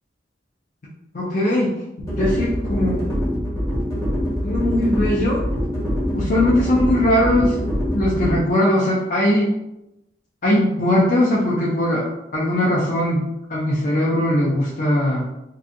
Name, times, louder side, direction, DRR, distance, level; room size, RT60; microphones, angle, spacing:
voice 1, 1.1-1.8 2.2-3.0 4.4-5.4 6.1-7.5 7.9-9.5 10.4-15.3, left 1 dB, 45° left, -6 dB, 0.5 m, -20 dB
sound 1, 2.0-8.4, equal, 20° left, 0.9 m, -24 dB
2.5 x 2.3 x 2.6 m, 0.90 s
head